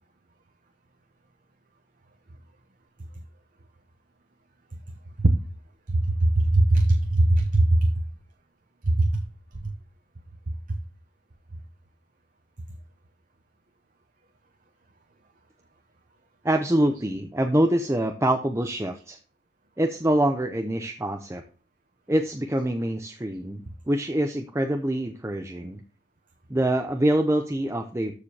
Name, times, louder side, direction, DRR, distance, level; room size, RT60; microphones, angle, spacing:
voice 1, 5.9-7.8 8.9-9.1, right 2 dB, 40° right, 5 dB, 0.8 m, -20 dB
voice 2, 16.4-19.2 19.8-21.4 22.1-25.8 26.5-28.1, right 1 dB, 15° right, 5 dB, 0.6 m, -25 dB
13.5 x 4.9 x 2.8 m, 0.38 s
head